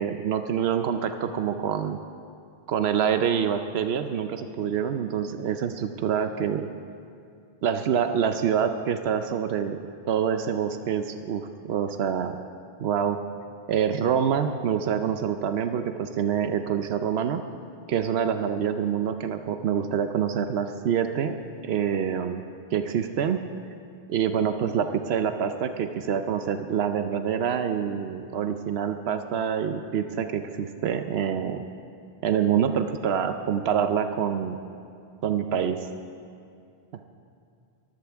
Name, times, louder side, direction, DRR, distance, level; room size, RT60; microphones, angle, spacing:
voice 1, 0.0-2.0 2.7-6.7 7.6-9.8 10.1-12.4 12.8-13.2 13.7-17.4 17.9-21.4 21.6-22.4 22.7-23.4 24.1-31.6 32.2-34.6 35.2-35.9, right 8 dB, 90° right, 8 dB, 0.9 m, -26 dB
22.5 x 15.5 x 3.5 m, 2.4 s
omnidirectional pair, 1.0 m